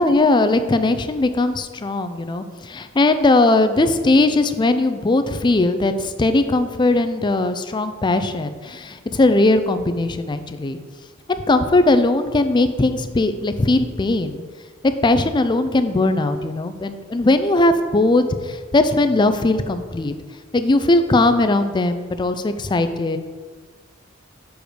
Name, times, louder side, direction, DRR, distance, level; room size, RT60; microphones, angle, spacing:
voice 1, 0.0-10.8 11.3-14.4 15.0-20.2 20.5-23.2, left 2 dB, 20° left, 9 dB, 0.4 m, -19 dB
6.2 x 5.0 x 5.0 m, 1.5 s
head